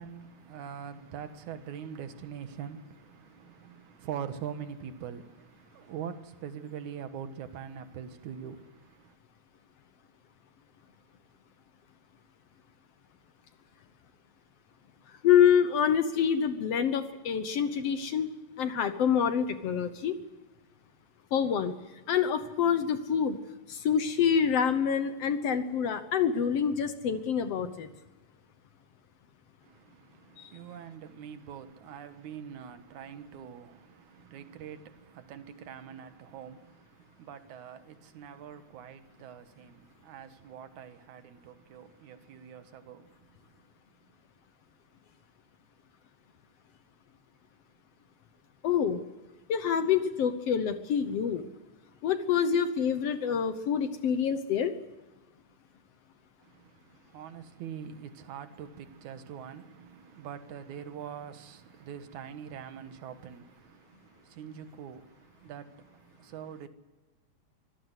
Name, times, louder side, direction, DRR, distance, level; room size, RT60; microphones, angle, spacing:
voice 1, 0.0-9.2 29.6-43.7 56.4-66.7, right 8 dB, 75° right, 2.7 m, -44 dB
voice 2, 15.2-18.3 18.6-20.2 21.3-21.7 22.1-23.4 23.7-27.9 30.4-30.5 48.6-49.0 49.5-51.5 52.0-54.7, left 8 dB, 65° left, 1.8 m, -26 dB
24.5 x 15.5 x 8.1 m
omnidirectional pair, 3.5 m